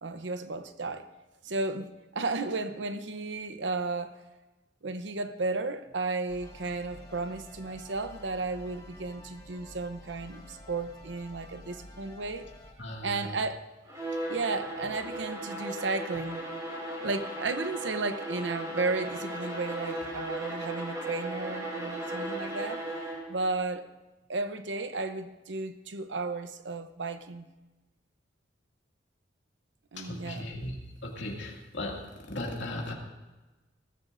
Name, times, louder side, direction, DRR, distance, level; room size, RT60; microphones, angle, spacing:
voice 1, 0.0-1.1 1.4-4.2 4.8-12.5 13.0-13.6 14.3-16.4 17.0-22.8 23.3-23.9 24.3-27.4 29.9-30.6, right 3 dB, 85° right, 0.8 m, -34 dB
sound 1, 6.3-12.7, left 1 dB, 20° left, 1.5 m, -50 dB
voice 2, 12.8-13.4 29.9-30.8 31.0-32.9, left 1 dB, 85° left, 2.3 m, -37 dB
Bowed string instrument, 13.9-23.4, right 1 dB, 20° right, 4.7 m, -36 dB
19.5 x 14.0 x 2.6 m
head